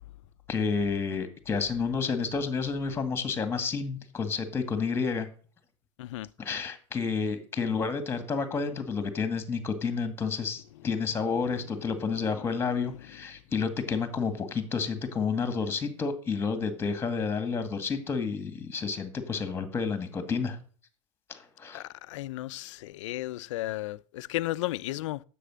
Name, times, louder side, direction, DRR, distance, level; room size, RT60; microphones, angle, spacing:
voice 1, 0.5-5.3 6.4-20.6 21.3-21.8, left 5 dB, 15° left, 2.0 m, -30 dB
voice 2, 21.7-25.2, left 16 dB, 75° left, 0.5 m, -34 dB
10.0 x 7.8 x 6.3 m
supercardioid pair, 140°, 16 cm